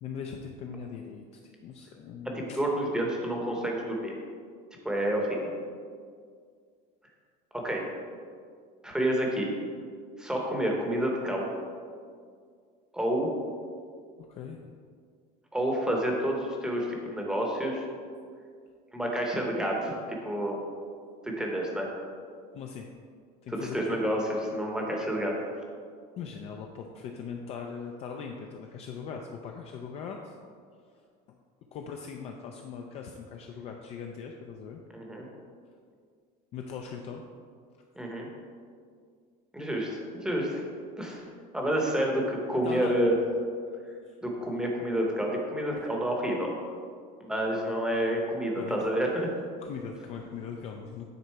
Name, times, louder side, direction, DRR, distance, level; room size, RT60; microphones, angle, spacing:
voice 1, 0.0-2.6 14.2-14.7 22.5-22.9 23.4-24.0 26.2-30.4 31.3-31.4 31.7-34.8 36.5-37.2 42.6-43.0 43.6-43.8 44.1-44.2 45.6-45.9 48.6-48.9 49.6-51.0, left 6 dB, 30° left, 2 dB, 0.4 m, -40 dB
voice 2, 2.6-4.1 4.8-5.5 7.5-7.8 8.8-9.5 10.2-11.5 12.9-13.3 15.5-17.9 18.9-20.6 21.2-21.9 23.7-25.3 34.9-35.3 38.0-38.3 39.5-40.6 41.0-41.2 41.5-43.2 44.2-46.5 47.2-49.3, right 1 dB, 5° right, -1 dB, 0.8 m, -29 dB
9.4 x 3.9 x 4.5 m, 2.1 s
cardioid pair, 180°, 20 cm